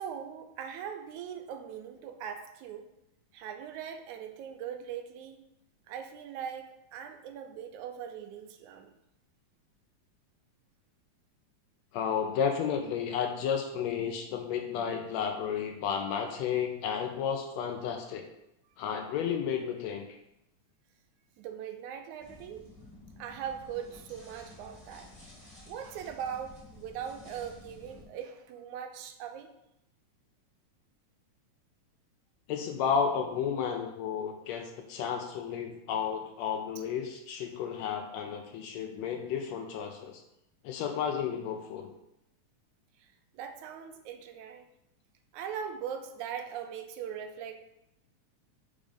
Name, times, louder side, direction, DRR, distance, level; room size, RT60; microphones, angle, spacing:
voice 1, 0.0-2.9 3.3-5.4 5.9-8.9 21.4-22.7 23.2-25.1 25.7-29.5 43.3-44.7 45.3-47.5, right 8 dB, 80° right, 6 dB, 2.0 m, -40 dB
voice 2, 11.9-18.3 18.8-20.1 32.5-40.2 40.6-41.9, left 7 dB, 80° left, 4 dB, 1.6 m, -32 dB
sound 1, 22.2-28.1, left 2 dB, 20° left, 0.9 m, -52 dB
5.2 x 3.6 x 5.0 m, 0.85 s
omnidirectional pair, 3.5 m